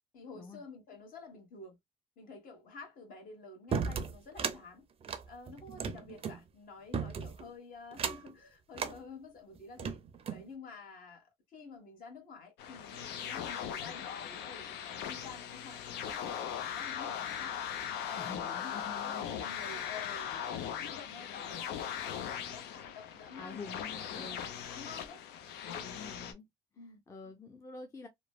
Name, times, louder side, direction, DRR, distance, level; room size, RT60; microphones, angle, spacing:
voice 1, 0.1-1.8 2.2-4.9 5.3-10.0 10.3-17.6 18.0-25.2 25.6-26.0 26.8-27.0, left 4 dB, 55° left, 1.4 m, -50 dB
sound 1, 3.7-4.6 5.0-6.4 6.9-7.4 7.9-8.3 8.7-9.0 9.6-10.5, right 6 dB, 35° right, 0.5 m, -35 dB
sound 2, 12.6-26.3, left 9 dB, 85° left, 0.6 m, -39 dB
voice 2, 18.2-19.4 20.3-20.9 23.4-24.6 25.5-26.5 27.1-28.1, left 4 dB, 20° left, 0.5 m, -48 dB
3.1 x 2.1 x 2.2 m
cardioid pair, 110°, 17 cm